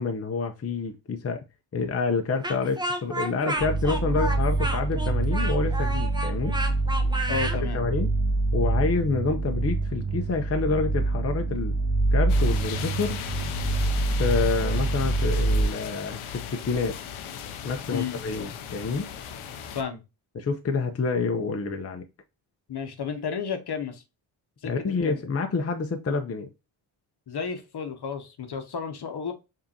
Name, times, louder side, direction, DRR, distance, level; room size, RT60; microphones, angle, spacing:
voice 1, 0.0-1.4 1.7-6.6 7.7-8.1 8.5-11.8 12.1-13.2 14.2-17.0 17.6-19.1 20.3-22.1 24.6-26.5, left 4 dB, 30° left, 0.7 m, -28 dB
Speech, 2.4-7.6, right 1 dB, 10° right, 0.9 m, -31 dB
sound 1, 3.6-15.7, right 2 dB, 30° right, 1.2 m, -26 dB
voice 2, 7.3-7.8 17.9-18.2 19.7-20.0 22.7-24.0 24.6-25.2 27.3-29.3, left 6 dB, 50° left, 1.0 m, -32 dB
sound 2, 12.3-19.8, left 8 dB, 85° left, 0.7 m, -36 dB
4.9 x 2.8 x 2.7 m
supercardioid pair, 50°, 49 cm